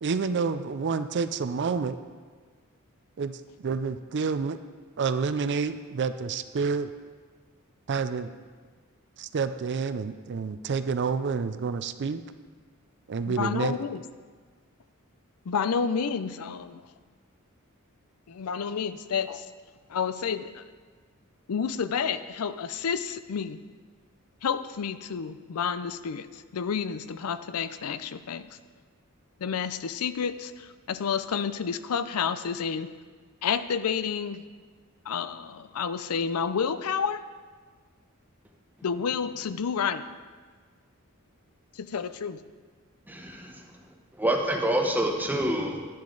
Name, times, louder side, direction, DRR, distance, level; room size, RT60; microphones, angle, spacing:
voice 1, 0.0-2.0 3.2-4.6 5.0-6.9 7.9-8.3 9.2-12.2 13.1-13.8, right 5 dB, 55° right, 11 dB, 0.4 m, -29 dB
voice 2, 13.3-14.0 15.5-16.8 18.3-19.5 19.9-20.6 21.5-23.6 24.4-28.5 29.4-32.9 33.4-34.4 35.1-37.2 38.8-40.1 41.7-42.4, left 6 dB, 90° left, 13 dB, 0.5 m, -30 dB
voice 3, 43.1-43.6 44.2-45.8, right 1 dB, 10° right, 2 dB, 1.1 m, -26 dB
10.5 x 10.5 x 3.9 m, 1.5 s
head